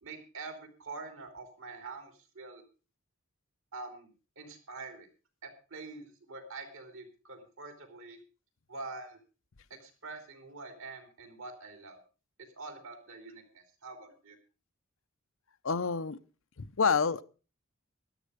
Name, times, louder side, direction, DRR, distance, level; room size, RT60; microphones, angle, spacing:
voice 1, 0.0-2.6 3.7-4.1 4.4-5.1 5.4-8.2 8.7-9.2 9.7-12.0 12.6-14.4, right 3 dB, 70° right, 6 dB, 3.5 m, -45 dB
voice 2, 15.6-16.2 16.6-17.2, left 5 dB, 70° left, 12 dB, 0.7 m, -28 dB
13.5 x 11.5 x 5.1 m, 0.35 s
head